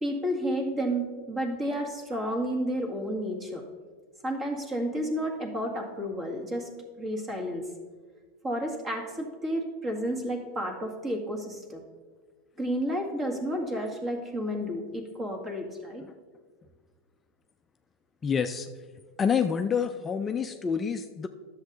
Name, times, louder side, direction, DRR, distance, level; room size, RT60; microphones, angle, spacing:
voice 1, 0.0-3.7 4.2-6.7 7.0-7.6 8.4-11.8 12.6-16.0, equal, 25° right, 3 dB, 1.9 m, -31 dB
voice 2, 18.2-18.7 19.2-21.3, left 6 dB, 20° left, 7 dB, 0.4 m, -27 dB
10.5 x 7.3 x 4.0 m, 1.5 s
supercardioid pair, 120°, 0 cm